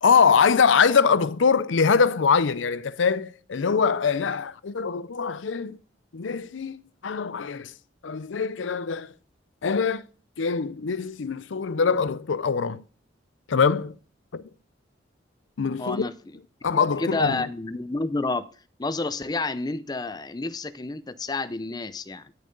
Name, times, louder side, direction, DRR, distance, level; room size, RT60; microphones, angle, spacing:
voice 1, 0.0-5.8 6.1-7.7 8.0-9.1 9.6-10.1 10.4-12.8 13.5-14.0 14.3-14.4 15.6-16.1 16.6-17.5, left 5 dB, 90° left, 0.5 m, -23 dB
voice 2, 15.8-16.1 17.0-18.5 18.8-22.2, left 3 dB, 20° left, 0.5 m, -29 dB
10.5 x 6.5 x 3.9 m
head